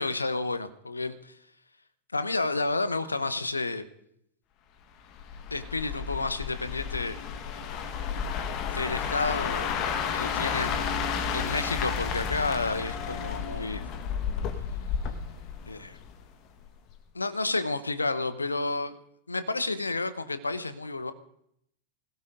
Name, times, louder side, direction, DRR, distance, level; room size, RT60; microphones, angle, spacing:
voice 1, 0.0-1.3 2.1-3.8 5.5-7.2 8.7-9.7 10.1-10.9 11.3-13.8 15.7-16.0 17.1-18.9 19.3-21.1, left 3 dB, 80° left, 0.9 m, -30 dB
sound 1, 5.2-16.3 16.6-16.9, left 7 dB, 40° left, 1.4 m, -32 dB
25.5 x 16.5 x 2.6 m
figure-of-eight pair, 90°, 0 cm